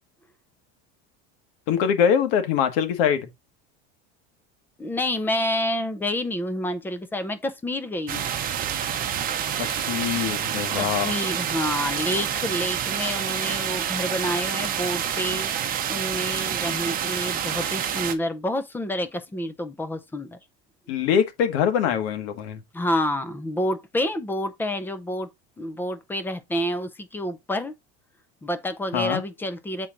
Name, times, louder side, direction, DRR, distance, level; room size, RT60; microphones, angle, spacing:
voice 1, 1.7-3.3 9.6-11.2 20.9-22.6 28.9-29.2, left 8 dB, 75° left, 1.6 m, -23 dB
voice 2, 4.8-8.3 10.8-15.5 15.9-20.4 22.7-25.3 25.6-27.7 28.4-29.9, left 1 dB, 5° left, 0.5 m, -28 dB
sound 1, 8.1-18.1, right 9 dB, 30° right, 0.9 m, -28 dB
7.3 x 4.5 x 3.8 m
cardioid pair, 165°, 31 cm